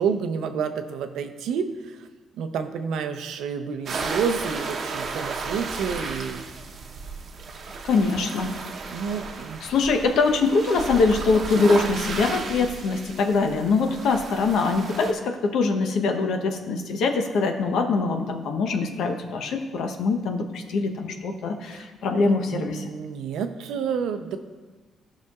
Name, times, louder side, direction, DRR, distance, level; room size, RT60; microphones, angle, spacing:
voice 1, 0.0-2.1 2.3-6.5 7.7-7.9 8.9-9.6 21.7-24.4, right 6 dB, 85° right, 8 dB, 0.5 m, -29 dB
sound 1, 3.9-15.1, right 4 dB, 55° right, 0.8 m, -34 dB
voice 2, 7.8-8.6 9.6-22.8, left 4 dB, 80° left, 5 dB, 0.8 m, -23 dB
16.5 x 5.7 x 2.4 m, 1.3 s
cardioid pair, 90°, 0 cm